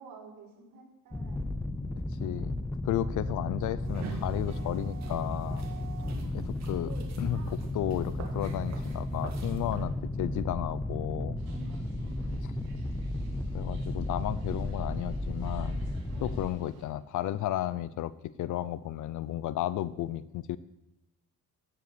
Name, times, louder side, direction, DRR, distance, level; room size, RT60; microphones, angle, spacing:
voice 1, 0.0-1.5 6.0-6.4 11.4-12.6 16.1-16.4, right 5 dB, 65° right, -1 dB, 5.6 m, -51 dB
sound 1, 1.1-16.5, left 1 dB, 5° left, 0.5 m, -34 dB
voice 2, 2.2-2.6 2.8-5.6 6.3-11.4 12.4-12.5 13.5-15.8 16.2-20.6, left 13 dB, 55° left, 18 dB, 0.7 m, -33 dB
sound 2, 3.8-9.9, right 5 dB, 45° right, 2.3 m, -45 dB
sound 3, 11.4-16.9, right 5 dB, 85° right, 3.4 m, -59 dB
16.0 x 8.0 x 6.9 m, 0.96 s
cardioid pair, 160°, 36 cm